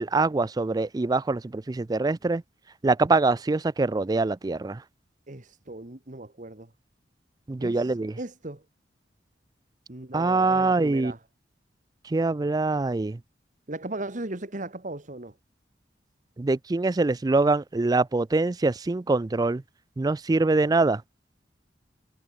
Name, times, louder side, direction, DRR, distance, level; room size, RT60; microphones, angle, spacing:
voice 1, 0.0-2.4 2.8-4.8 7.5-8.2 10.1-11.1 12.1-13.2 16.4-19.6 20.0-21.0, right 3 dB, 20° right, 0.4 m, -24 dB
voice 2, 5.3-6.7 7.6-8.6 9.9-11.2 13.7-15.3, right 2 dB, 45° right, 1.7 m, -37 dB
head